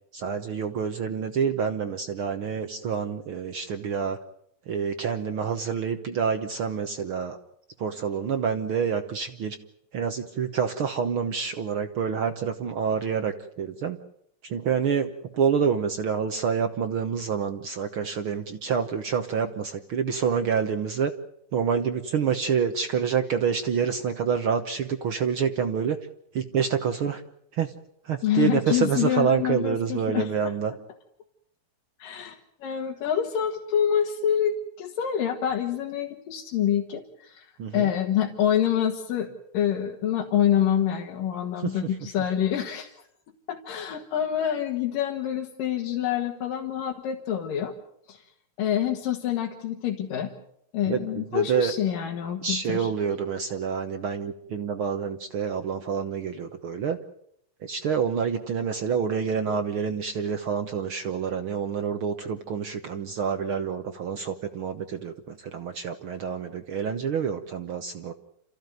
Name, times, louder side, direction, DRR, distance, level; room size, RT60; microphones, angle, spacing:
voice 1, 0.1-4.2 4.7-7.4 7.8-9.6 9.9-14.0 14.4-21.1 21.5-26.0 26.3-27.2 27.5-27.7 28.0-30.7 37.6-37.9 41.6-41.7 50.8-51.7 52.4-57.0 57.6-68.1, right 7 dB, 70° right, 8 dB, 1.2 m, -27 dB
voice 2, 28.2-30.5 32.0-37.5 37.7-39.3 39.5-42.9 43.5-47.7 48.1-48.2 48.6-50.3 50.7-52.9, left 9 dB, 80° left, 1 dB, 3.3 m, -26 dB
28.5 x 15.0 x 9.3 m, 0.74 s
omnidirectional pair, 3.8 m